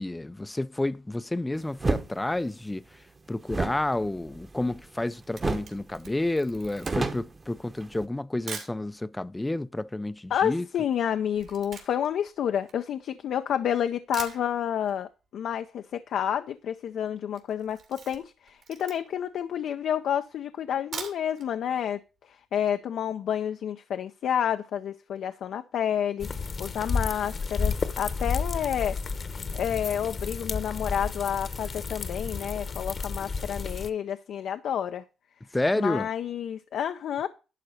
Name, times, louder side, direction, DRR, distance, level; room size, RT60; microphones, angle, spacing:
voice 1, 0.0-2.8 3.3-10.7 35.5-36.1, left 2 dB, 10° left, 0.4 m, -30 dB
sound 1, 1.8-2.1 3.5-5.0 5.4-5.8 6.1-6.2 6.5-8.1, right 3 dB, 30° right, 1.1 m, -30 dB
Camera, 5.2-8.8 9.5-9.6 9.8-13.4 13.8-13.9 14.1-15.0 15.3-15.4 15.7-15.8 15.9-16.4 16.7-16.9 17.3-19.3 19.8-19.9 20.7-21.5 21.9-22.0 22.3-22.4, right 6 dB, 65° right, 2.6 m, -43 dB
voice 2, 10.3-22.0 22.5-28.9 29.5-35.0 35.8-37.3, left 9 dB, 70° left, 0.5 m, -29 dB
sound 2, 26.2-33.9, left 4 dB, 40° left, 0.9 m, -32 dB
11.5 x 4.0 x 6.5 m
cardioid pair, 90°, 0 cm